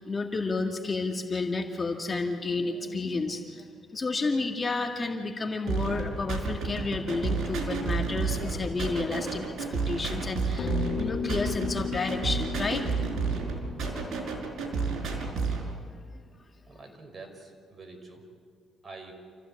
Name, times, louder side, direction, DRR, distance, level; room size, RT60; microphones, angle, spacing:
voice 1, 0.0-12.8 15.4-15.5 15.9-16.0, left 3 dB, 30° left, 3 dB, 2.0 m, -31 dB
sound 1, 5.7-15.7, right 4 dB, 65° right, 5.0 m, -31 dB
sound 2, 10.6-15.2, left 7 dB, 55° left, 0.6 m, -36 dB
voice 2, 16.7-18.2 18.8-19.1, right 3 dB, 30° right, 4 dB, 5.0 m, -46 dB
28.0 x 15.5 x 8.6 m, 2.1 s
cardioid pair, 90°, 0 cm